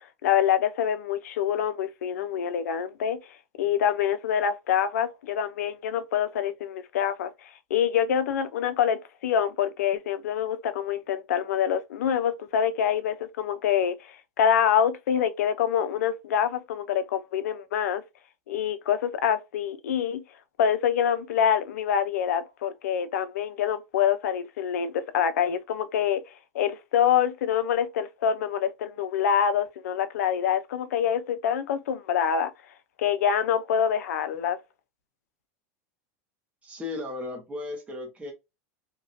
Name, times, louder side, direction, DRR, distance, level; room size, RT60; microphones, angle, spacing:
voice 1, 0.0-3.2 3.6-18.0 18.5-20.2 20.6-26.2 26.5-32.5 33.0-34.6, left 8 dB, 85° left, 0.5 m, -26 dB
voice 2, 36.6-38.3, left 3 dB, 15° right, 1.2 m, -35 dB
3.0 x 2.8 x 2.6 m
supercardioid pair, 115°, 8 cm